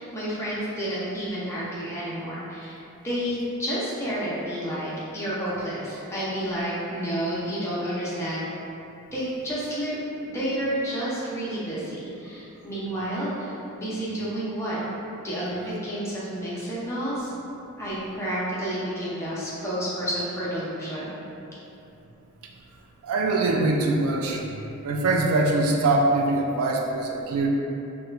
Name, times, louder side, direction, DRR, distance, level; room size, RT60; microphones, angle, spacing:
voice 1, 0.0-2.8 3.0-8.4 9.1-10.0 10.2-14.8 15.2-17.3 17.8-21.2, equal, 10° left, -9 dB, 0.6 m, -30 dB
voice 2, 23.0-24.4 24.8-27.5, right 2 dB, 75° right, 0 dB, 0.3 m, -23 dB
2.9 x 2.2 x 3.4 m, 2.9 s
head